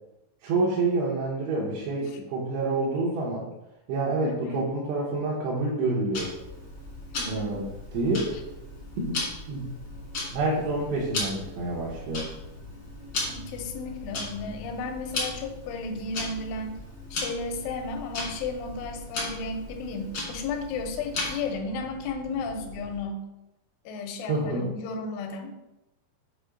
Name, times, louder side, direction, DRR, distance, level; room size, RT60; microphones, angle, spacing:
voice 1, 0.4-3.5 3.9-6.3 7.2-7.7 7.9-8.4 9.0-9.2 9.5-9.7 10.3-12.3 24.3-24.7, right 2 dB, 80° right, -6 dB, 3.4 m, -27 dB
voice 2, 4.2-4.7 7.2-7.6 13.3-16.7 17.1-23.3 23.9-25.5, left 3 dB, 85° left, 4 dB, 3.2 m, -34 dB
Tick-tock, 6.1-21.6, left 2 dB, 70° left, 1.1 m, -37 dB
sound 1, 6.4-23.0, equal, 60° right, 1.3 m, -45 dB
7.9 x 2.7 x 5.0 m, 0.95 s
omnidirectional pair, 5.4 m